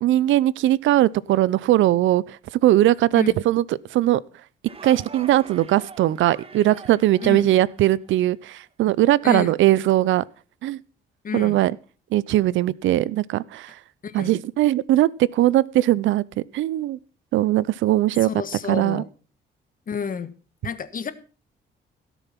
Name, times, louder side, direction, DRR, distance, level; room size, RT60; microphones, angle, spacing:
voice 1, 0.0-3.6 3.9-4.2 4.8-10.2 10.6-10.8 11.3-11.7 12.1-13.8 14.1-16.2 16.5-17.0 17.3-18.3 18.7-19.0, right 14 dB, 80° right, 0.5 m, -20 dB
sound 1, 4.7-8.3, right 4 dB, 30° right, 1.4 m, -44 dB
voice 2, 9.2-9.6 11.2-11.6 14.0-14.3 18.2-19.1 19.9-20.3 20.6-21.1, left 6 dB, 45° left, 1.4 m, -30 dB
17.0 x 7.0 x 5.8 m
cardioid pair, 90°, 20 cm